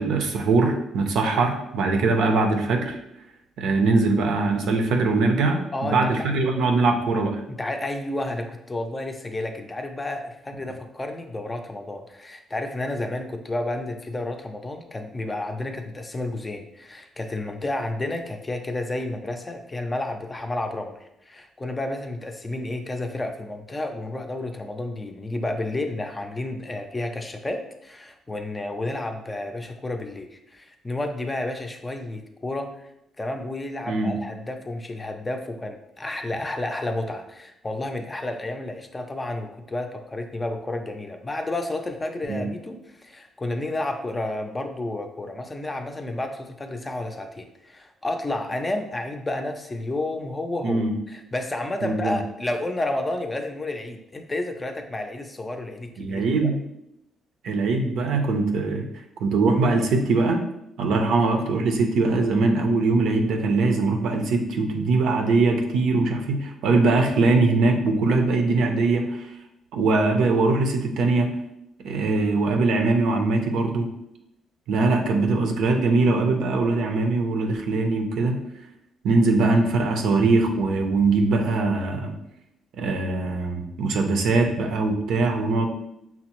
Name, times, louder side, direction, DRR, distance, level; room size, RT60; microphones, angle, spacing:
voice 1, 0.0-3.0 3.6-7.4 33.9-34.1 42.3-42.4 50.6-50.9 51.8-52.2 56.0-56.5 57.4-58.8 59.2-60.4 60.8-69.3 69.7-71.3 71.8-73.9 74.7-78.3 79.0-82.2 82.8-85.7, right 3 dB, 80° right, 4 dB, 0.6 m, -22 dB
voice 2, 5.7-6.1 7.5-32.9 33.2-56.5, left 2 dB, 20° left, 5 dB, 0.5 m, -31 dB
5.6 x 2.0 x 2.9 m, 0.82 s
cardioid pair, 90°, 0 cm